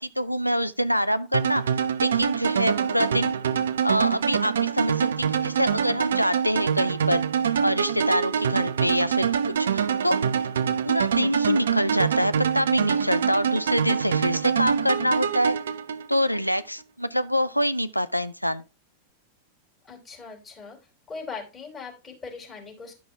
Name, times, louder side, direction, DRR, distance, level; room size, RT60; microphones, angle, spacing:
voice 1, 0.0-1.6 2.0-3.3 3.8-7.3 7.6-9.3 9.6-10.2 10.8-15.6 16.1-18.6, equal, 90° left, 0.5 m, -25 dB
sound 1, 1.3-16.4, right 7 dB, 65° right, 0.6 m, -25 dB
voice 2, 19.9-20.8 21.1-22.9, left 5 dB, 20° left, 4.0 m, -39 dB
11.0 x 5.9 x 3.5 m
figure-of-eight pair, 90°, 0 cm